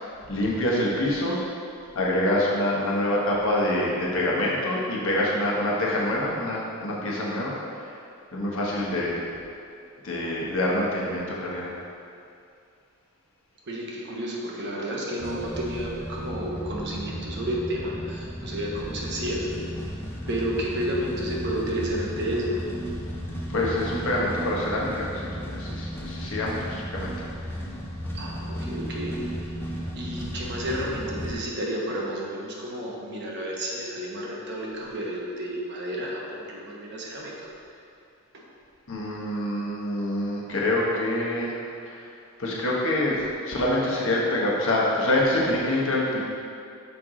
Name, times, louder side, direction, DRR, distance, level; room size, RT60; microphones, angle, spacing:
voice 1, 0.3-1.4 1.9-7.5 7.8-7.9 8.3-9.2 10.0-11.7 23.5-27.1 34.8-35.0 38.9-42.1 42.4-46.2, left 1 dB, 60° left, -4 dB, 1.1 m, -26 dB
voice 2, 13.7-19.5 20.3-22.6 28.1-29.6 29.9-37.3 38.3-38.4, equal, 50° right, -3 dB, 1.0 m, -31 dB
sound 1, 15.2-31.3, equal, 10° left, 0.5 m, -34 dB
6.0 x 4.6 x 3.8 m, 2.4 s
head